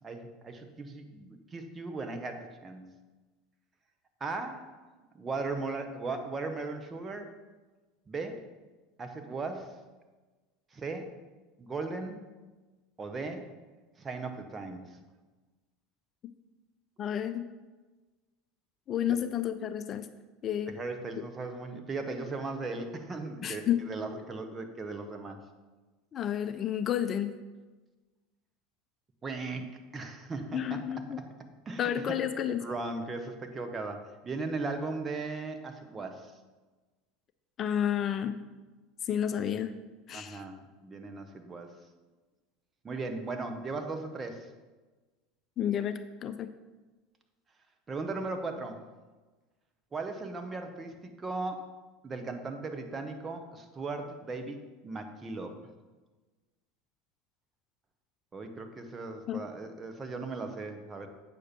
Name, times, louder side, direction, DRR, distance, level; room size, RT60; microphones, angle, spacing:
voice 1, 0.0-2.8 4.2-4.8 5.1-7.3 8.1-8.4 9.0-9.7 10.7-11.1 11.6-12.2 13.0-13.5 14.0-14.8 20.7-25.4 29.2-30.8 31.2-31.3 31.6-31.9 32.6-36.3 40.1-41.7 42.8-44.5 47.9-48.8 49.9-51.6 52.0-55.5 58.3-61.1, right 3 dB, 25° right, 6 dB, 1.2 m, -37 dB
voice 2, 17.0-17.5 18.9-20.1 20.4-20.7 21.2-21.3 23.4-23.8 26.1-27.4 30.5-31.2 31.8-32.6 37.6-38.4 39.0-39.8 40.1-40.4 45.6-46.5 59.3-59.4, left 9 dB, 40° left, 11 dB, 0.5 m, -31 dB
8.4 x 6.6 x 4.5 m, 1.2 s
hypercardioid pair, 85°, 0 cm